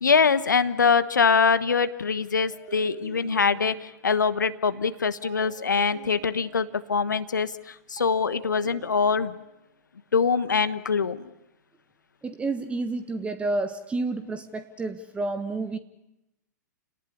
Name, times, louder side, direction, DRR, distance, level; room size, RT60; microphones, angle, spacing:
voice 1, 0.0-9.3 10.1-11.3, left 5 dB, 75° left, 13 dB, 1.2 m, -23 dB
sound 1, 2.5-4.2 5.2-6.9 8.0-9.7, right 7 dB, 50° right, 4.0 m, -44 dB
voice 2, 12.2-15.8, right 3 dB, 10° right, 11 dB, 1.2 m, -30 dB
29.5 x 19.0 x 9.9 m, 0.91 s
figure-of-eight pair, 110°, 10 cm